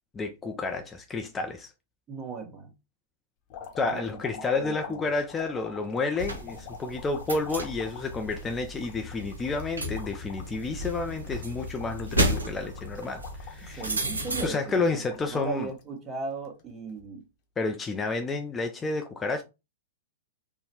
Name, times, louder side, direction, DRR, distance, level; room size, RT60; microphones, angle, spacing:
voice 1, 0.1-1.7 3.8-13.9 14.4-15.7 17.6-19.4, left 3 dB, 15° left, 0.4 m, -30 dB
voice 2, 2.1-2.7 3.8-5.0 13.8-17.2, right 4 dB, 25° right, 1.0 m, -37 dB
sound 1, 3.5-15.8 16.3-17.0 18.0-18.2, left 8 dB, 45° left, 0.9 m, -46 dB
sound 2, 6.2-14.5, right 1 dB, 80° right, 0.7 m, -33 dB
3.8 x 2.1 x 2.8 m
figure-of-eight pair, 105°, 0 cm